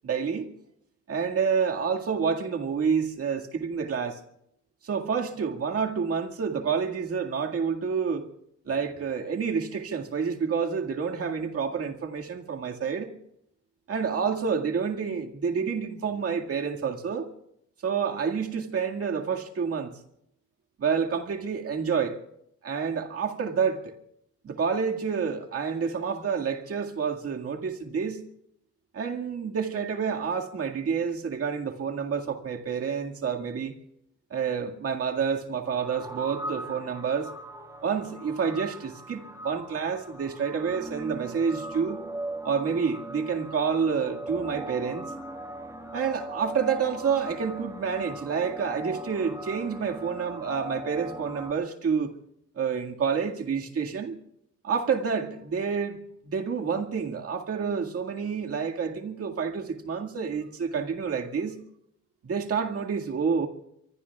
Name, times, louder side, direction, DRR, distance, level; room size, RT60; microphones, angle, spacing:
voice 1, 0.0-0.5 1.1-4.2 4.8-8.3 8.7-13.1 13.9-17.3 17.8-20.0 20.8-22.2 22.6-23.9 24.4-28.2 28.9-33.8 34.3-37.3 37.8-42.0 42.4-45.0 45.9-52.1 52.6-54.1 54.6-56.0 56.2-61.6 62.2-63.5, right 6 dB, 50° right, 2.0 m, -28 dB
sound 1, 35.7-51.5, right 1 dB, 10° right, 1.8 m, -39 dB
25.0 x 23.5 x 2.4 m
cardioid pair, 90°, 30 cm